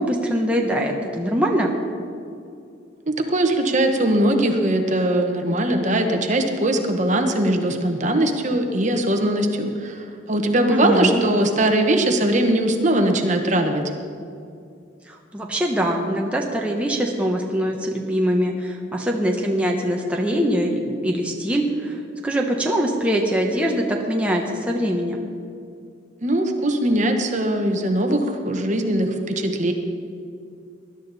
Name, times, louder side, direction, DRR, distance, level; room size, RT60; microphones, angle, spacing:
voice 1, 0.0-1.7 10.7-11.2 15.1-25.2, equal, 5° right, 0 dB, 1.0 m, -23 dB
voice 2, 3.1-13.8 26.2-29.7, right 1 dB, 40° right, 4 dB, 1.2 m, -21 dB
20.0 x 11.5 x 4.1 m, 2.4 s
head